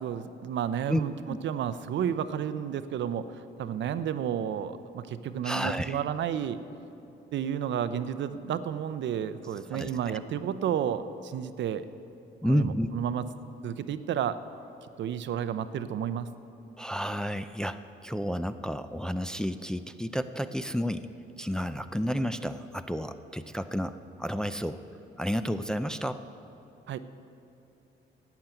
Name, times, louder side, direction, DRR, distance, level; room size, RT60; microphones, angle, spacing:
voice 1, 0.0-6.6 7.3-11.9 12.4-13.2 13.6-14.4 15.0-16.3 26.9-27.0, right 9 dB, 65° right, 12 dB, 0.6 m, -31 dB
voice 2, 5.4-6.0 9.7-10.2 12.4-12.9 16.8-21.1 21.4-24.8 25.2-26.2, equal, 5° left, 9 dB, 0.4 m, -31 dB
12.0 x 8.3 x 9.0 m, 2.8 s
cardioid pair, 90°, 20 cm